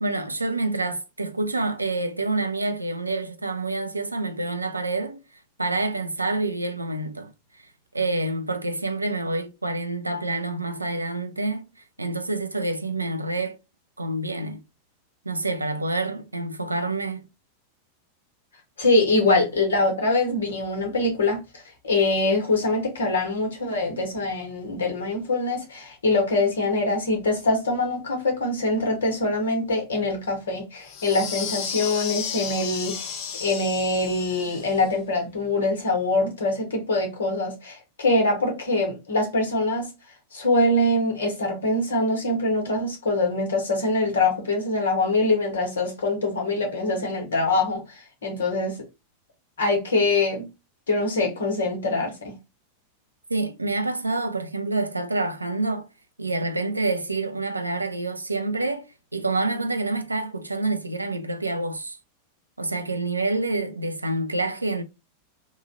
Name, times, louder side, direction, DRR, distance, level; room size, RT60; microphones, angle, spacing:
voice 1, 0.0-5.2 5.6-7.3 7.9-11.7 12.0-13.6 14.0-14.6 15.2-17.3 53.3-55.9 56.2-62.0 62.6-64.8, right 2 dB, 80° right, 0.4 m, -27 dB
voice 2, 18.8-39.9 40.3-48.8 49.6-50.5 50.9-52.4, left 2 dB, 65° left, 1.2 m, -24 dB
sound 1, 30.8-34.9, left 7 dB, 45° left, 0.6 m, -33 dB
3.0 x 2.3 x 3.8 m
figure-of-eight pair, 90°, 0 cm